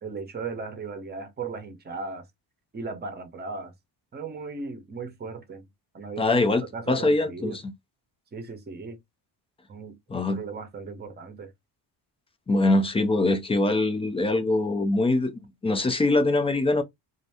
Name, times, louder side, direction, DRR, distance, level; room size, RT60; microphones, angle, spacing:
voice 1, 0.0-2.2 2.7-3.7 4.1-5.7 5.9-6.4 6.7-7.6 8.3-9.0 9.7-11.5, right 4 dB, 20° right, 0.7 m, -36 dB
voice 2, 6.2-7.7 10.1-10.4 12.5-16.8, left 2 dB, 15° left, 0.3 m, -23 dB
2.6 x 2.5 x 3.3 m
cardioid pair, 165°, 45 cm